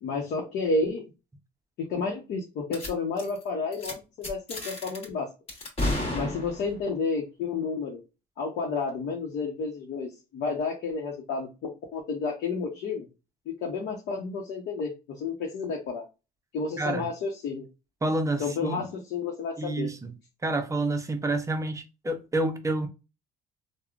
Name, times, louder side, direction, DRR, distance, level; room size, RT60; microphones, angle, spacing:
voice 1, 0.0-1.0 1.8-5.3 6.1-8.0 8.4-13.1 13.5-16.0 16.5-17.6 18.4-19.9, left 4 dB, 70° left, 0.8 m, -31 dB
sound 1, 2.7-2.9 3.2-3.4 3.7-3.9 4.2-5.1 5.5-6.8, left 1 dB, 35° left, 1.2 m, -32 dB
voice 2, 16.8-17.1 18.0-18.8 19.6-20.1 20.4-22.9, right 2 dB, 20° right, 0.5 m, -28 dB
3.5 x 2.1 x 2.3 m
cardioid pair, 110°, 17 cm